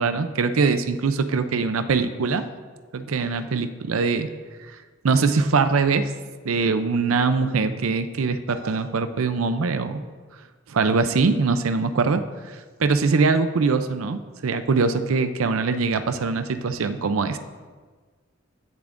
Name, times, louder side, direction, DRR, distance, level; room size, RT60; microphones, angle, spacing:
voice 1, 0.0-2.4 2.9-4.3 5.0-6.1 6.4-10.0 10.7-12.2 12.8-17.4, right 4 dB, 90° right, 10 dB, 0.5 m, -22 dB
17.0 x 6.9 x 2.6 m, 1.4 s
head